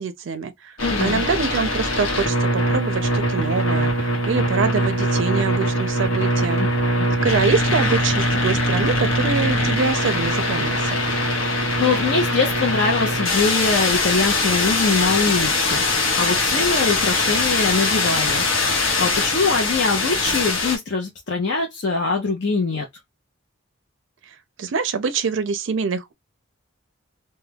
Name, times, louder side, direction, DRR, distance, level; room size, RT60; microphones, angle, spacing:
voice 1, 0.0-0.7 1.0-6.6 7.2-11.0 24.6-26.1, right 5 dB, 65° right, 0.4 m, -24 dB
sound 1, 0.8-20.8, left 1 dB, 75° left, 0.9 m, -22 dB
voice 2, 0.8-1.2 6.6-6.7 11.8-18.4 19.0-22.9, left 4 dB, 55° left, 0.6 m, -23 dB
2.3 x 2.1 x 3.2 m
head